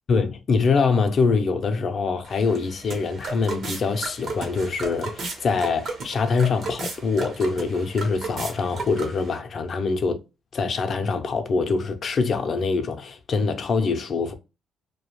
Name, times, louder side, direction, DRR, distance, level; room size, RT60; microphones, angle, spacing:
voice 1, 0.1-10.2 10.5-14.3, left 4 dB, 50° left, 0.5 m, -24 dB
sound 1, 2.3-9.4, right 3 dB, 60° right, 0.8 m, -35 dB
2.4 x 2.1 x 3.0 m
cardioid pair, 90°, 0 cm